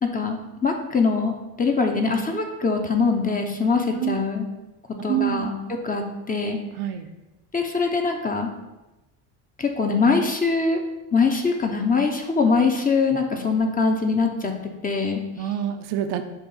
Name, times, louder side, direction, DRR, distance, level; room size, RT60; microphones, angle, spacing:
voice 1, 0.0-4.4 5.0-6.6 7.5-8.5 9.6-10.8 11.1-14.5 14.8-15.2, left 4 dB, 20° left, 3 dB, 0.9 m, -23 dB
voice 2, 5.1-5.8 6.8-7.1 15.4-16.2, right 11 dB, 70° right, 7 dB, 0.7 m, -27 dB
7.1 x 2.6 x 5.6 m, 1.0 s
cardioid pair, 100°, 40 cm